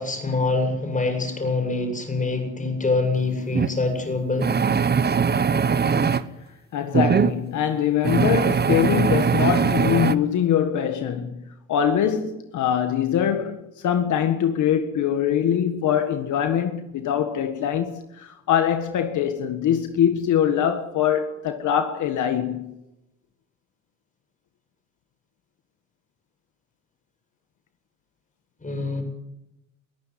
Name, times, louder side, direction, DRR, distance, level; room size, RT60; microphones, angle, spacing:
voice 1, 0.0-4.5 28.6-29.0, left 3 dB, 25° left, 7.7 m, -25 dB
sound 1, 3.5-3.7 4.4-6.2 6.9-7.3 8.0-10.1, right 6 dB, 35° right, 1.2 m, -21 dB
voice 2, 6.7-22.8, left 9 dB, 75° left, 1.7 m, -23 dB
22.5 x 15.0 x 9.7 m
cardioid pair, 90°, 30 cm